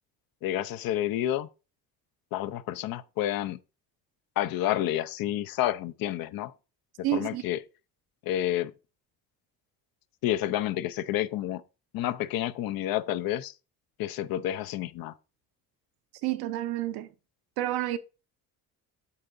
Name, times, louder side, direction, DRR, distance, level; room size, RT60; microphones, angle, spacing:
voice 1, 0.4-1.5 2.3-3.6 4.4-6.5 7.1-7.6 8.2-8.7 10.2-11.6 11.9-13.5 14.0-15.1, left 13 dB, 70° left, 0.6 m, -29 dB
voice 2, 7.0-7.4 16.2-17.1 17.6-18.0, right 14 dB, 80° right, 0.8 m, -29 dB
8.5 x 6.8 x 2.6 m
cardioid pair, 100°, 37 cm